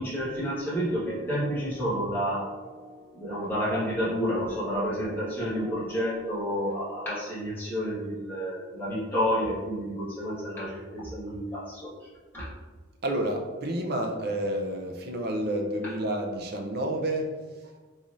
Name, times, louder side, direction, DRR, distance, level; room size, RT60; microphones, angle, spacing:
voice 1, 0.0-2.5 3.1-11.9 12.3-12.4, equal, 10° left, -11 dB, 1.5 m, -30 dB
sound 1, 0.7-7.2, right 2 dB, 50° left, 1.1 m, -47 dB
voice 2, 13.0-17.4, right 1 dB, 50° right, 2 dB, 0.5 m, -29 dB
3.9 x 3.1 x 2.5 m, 1.3 s
head